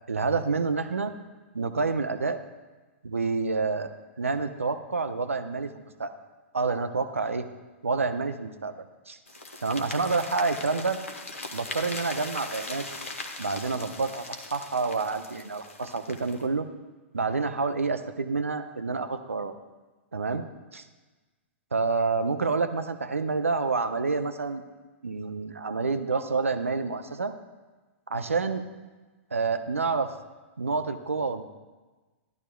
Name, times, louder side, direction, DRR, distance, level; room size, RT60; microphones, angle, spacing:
voice 1, 0.1-1.1 1.5-2.4 3.0-6.1 6.5-7.5 7.8-9.2 9.6-11.0 11.5-12.9 13.4-16.7 17.1-19.5 20.1-20.4 20.7-20.8 21.7-24.6 25.0-27.3 28.1-28.6 29.3-30.1 30.6-31.4, right 4 dB, 80° right, 9 dB, 0.7 m, -28 dB
sound 1, 9.3-16.5, left 2 dB, 80° left, 1.1 m, -39 dB
13.5 x 12.0 x 2.3 m, 1.3 s
figure-of-eight pair, 110°, 7 cm